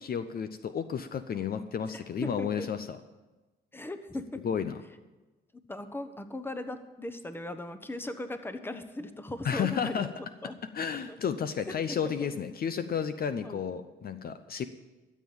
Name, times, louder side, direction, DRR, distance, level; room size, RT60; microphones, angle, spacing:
voice 1, 0.0-3.0 4.4-4.8 9.4-10.1 10.7-14.7, left 7 dB, 50° left, 10 dB, 0.7 m, -32 dB
voice 2, 1.9-2.7 3.7-4.5 5.7-10.1 10.4-10.5 11.7-12.3 13.4-13.6, left 1 dB, 10° left, 9 dB, 1.1 m, -38 dB
13.0 x 7.5 x 8.7 m, 1.2 s
cardioid pair, 90°, 20 cm